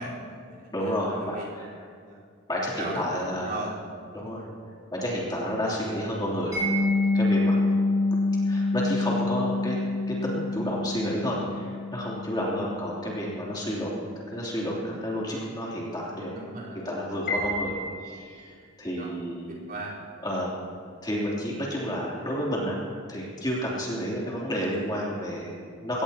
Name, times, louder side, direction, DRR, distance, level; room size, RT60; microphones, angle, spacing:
voice 1, 0.0-1.5 2.0-2.2 2.8-3.7 4.1-4.5 16.3-16.8 19.0-19.2 19.5-20.0 25.4-25.6, right 1 dB, 45° right, -7 dB, 4.3 m, -37 dB
voice 2, 0.7-1.7 2.5-3.6 4.1-4.4 4.9-6.7 7.1-7.6 8.5-9.8 10.1-16.4 16.8-17.7 18.0-19.5 20.2-20.6 21.0-22.8 23.1-26.0, equal, 20° left, -5 dB, 3.2 m, -30 dB
Mallet percussion, 6.5-13.3, left 2 dB, 15° right, 4.7 m, -26 dB
Piano, 17.3-18.6, left 1 dB, 45° left, 4.7 m, -32 dB
23.5 x 18.0 x 3.0 m, 2.1 s
head